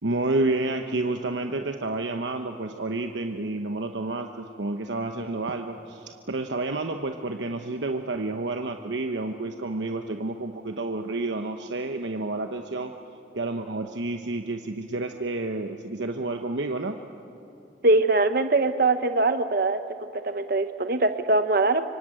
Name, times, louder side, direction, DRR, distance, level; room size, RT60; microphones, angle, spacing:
voice 1, 0.0-12.9 13.3-17.0, right 2 dB, 75° right, 5 dB, 1.0 m, -30 dB
voice 2, 17.8-19.8 20.2-21.8, right 2 dB, 50° right, 9 dB, 0.8 m, -22 dB
26.0 x 24.0 x 9.0 m, 2.8 s
head